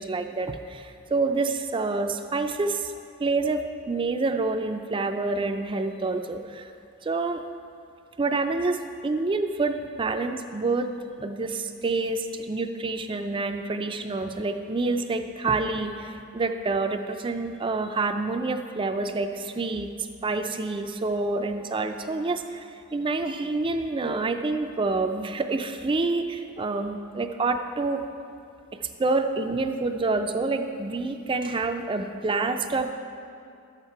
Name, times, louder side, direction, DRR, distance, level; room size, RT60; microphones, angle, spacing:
voice 1, 0.0-2.9 3.2-6.7 7.0-7.4 8.2-10.9 11.2-28.0 28.8-32.9, right 3 dB, 25° right, 7 dB, 0.4 m, -27 dB
11.5 x 8.2 x 4.5 m, 2.4 s
head